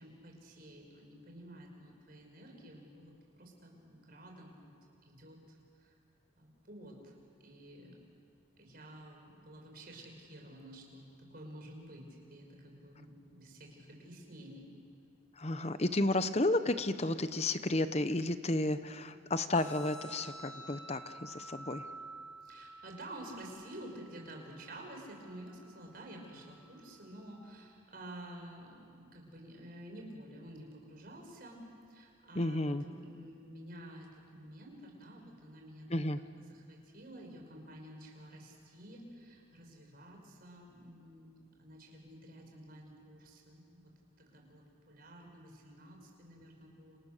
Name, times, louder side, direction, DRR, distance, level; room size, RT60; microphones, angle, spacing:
voice 1, 0.0-4.7 5.1-6.0 6.4-7.1 7.4-8.0 8.6-14.7 22.4-31.6 31.9-36.0 36.4-41.3 41.6-43.9 44.2-47.0, right 1 dB, 50° right, 1 dB, 5.4 m, -51 dB
voice 2, 15.4-21.8 32.3-32.8 35.9-36.2, left 2 dB, 35° left, 11 dB, 1.0 m, -32 dB
sound 1, 19.5-27.5, right 2 dB, 15° right, 6.6 m, -51 dB
29.5 x 28.0 x 6.8 m, 2.4 s
head